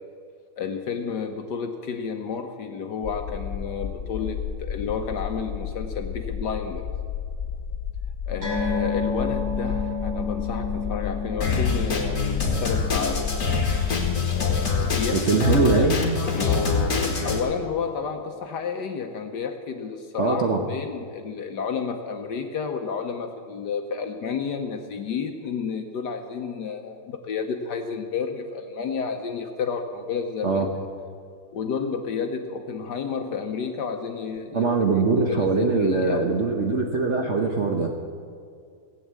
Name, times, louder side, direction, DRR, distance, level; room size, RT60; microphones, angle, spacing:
voice 1, 0.6-6.9 8.3-13.2 14.3-15.9 16.3-30.7 31.5-35.0 35.3-36.2, left 6 dB, 60° left, 5 dB, 1.2 m, -31 dB
sound 1, 3.0-15.2, left 7 dB, 85° left, 0.6 m, -32 dB
sound 2, 8.4-15.2 15.5-15.7 16.1-16.2, left 4 dB, 75° right, 5.6 m, -32 dB
Drum kit, 11.4-17.4, left 4 dB, 40° left, 1.9 m, -25 dB
voice 2, 15.1-15.9 20.2-20.6 30.4-30.7 34.5-37.9, right 4 dB, 55° right, 2 dB, 0.8 m, -22 dB
16.0 x 8.5 x 8.1 m, 2.3 s
omnidirectional pair, 2.4 m